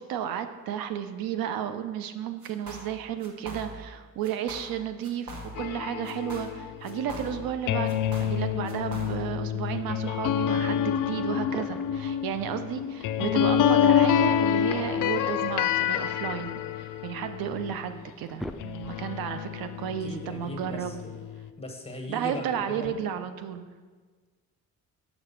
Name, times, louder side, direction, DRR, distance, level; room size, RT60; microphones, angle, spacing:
voice 1, 0.0-21.0 22.1-23.7, right 9 dB, 75° right, 9 dB, 0.6 m, -33 dB
sound 1, 2.4-2.9 3.2-3.9 4.2-4.8 5.0-5.8 6.1-7.6 7.9-9.4, right 1 dB, 55° right, 1.6 m, -42 dB
sound 2, 5.6-18.1 18.6-21.5, left 9 dB, 60° left, 0.5 m, -28 dB
sound 3, 11.4-12.1 13.5-14.4 15.6-17.0 17.6-17.7 18.0-19.2, equal, ahead, 0.3 m, -43 dB
voice 2, 19.9-21.3 21.6-23.0, left 1 dB, 15° left, 2 dB, 1.4 m, -39 dB
7.1 x 5.0 x 5.6 m, 1.4 s
cardioid pair, 75°, 35 cm